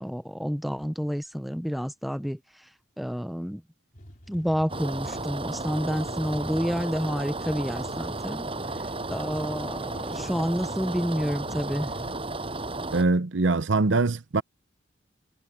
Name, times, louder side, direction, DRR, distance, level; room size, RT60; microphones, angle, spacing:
voice 1, 0.0-2.4 3.0-3.6 4.3-8.4 9.1-11.9, equal, ahead, 0.7 m, -29 dB
sound 1, 3.9-12.1, equal, 45° left, 4.3 m, -45 dB
sound 2, 4.7-13.0, right 2 dB, 30° right, 7.2 m, -33 dB
voice 2, 12.9-14.4, right 3 dB, 65° right, 0.8 m, -23 dB
head